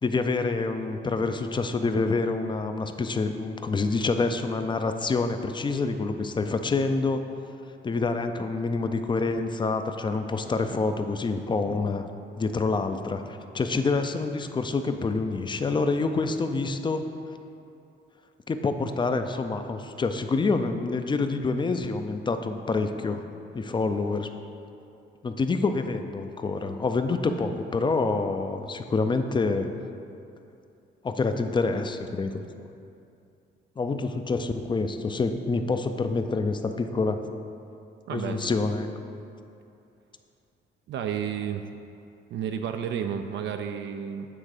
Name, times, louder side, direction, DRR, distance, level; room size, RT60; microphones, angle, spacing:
voice 1, 0.0-7.2 7.8-12.1 12.4-17.0 18.5-23.2 23.5-24.3 25.2-29.7 31.0-32.7 33.8-37.2 38.1-38.9, left 3 dB, 25° left, 8 dB, 0.4 m, -27 dB
voice 2, 38.1-38.6 40.9-41.7 42.3-44.3, right 8 dB, 70° right, 6 dB, 0.4 m, -31 dB
8.7 x 3.5 x 4.9 m, 2.6 s
cardioid pair, 90°, 20 cm